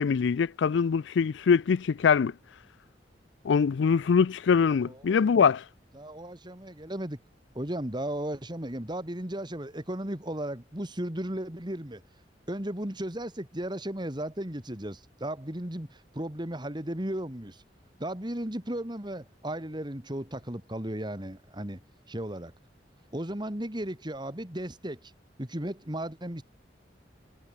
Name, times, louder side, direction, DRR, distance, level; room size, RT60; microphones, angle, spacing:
voice 1, 0.0-2.3 3.4-5.6, left 6 dB, 85° left, 0.4 m, -23 dB
voice 2, 4.8-5.3 5.9-7.2 7.5-12.0 12.5-17.6 18.0-21.8 22.1-22.5 23.1-25.0 25.4-26.4, right 1 dB, 25° right, 2.5 m, -35 dB
head